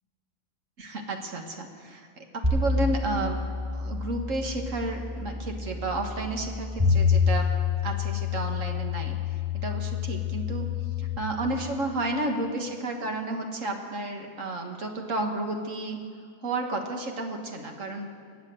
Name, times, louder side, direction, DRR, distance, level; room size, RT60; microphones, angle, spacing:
voice 1, 0.8-2.2 2.5-3.4 3.7-7.5 7.8-9.2 9.6-10.7 11.0-16.0 16.4-18.1, right 2 dB, 60° right, 3 dB, 2.0 m, -32 dB
sound 1, 2.4-11.2, left 5 dB, 30° right, 4.6 m, -28 dB
21.5 x 8.7 x 7.8 m, 2.2 s
omnidirectional pair, 1.5 m